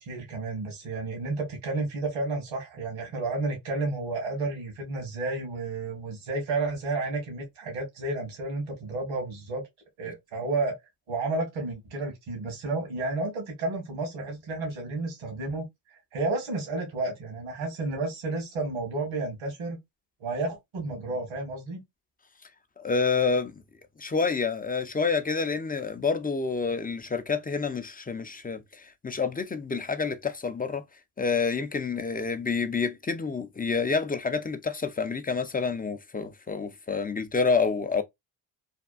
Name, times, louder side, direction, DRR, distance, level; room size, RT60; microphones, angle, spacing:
voice 1, 0.0-9.6 10.0-10.7 11.1-15.6 16.1-19.8 20.2-21.8, right 3 dB, 75° right, 1.8 m, -31 dB
voice 2, 22.8-23.6 24.0-30.8 31.2-38.0, left 4 dB, 20° left, 0.5 m, -28 dB
3.5 x 2.3 x 2.3 m
supercardioid pair, 60°, 48 cm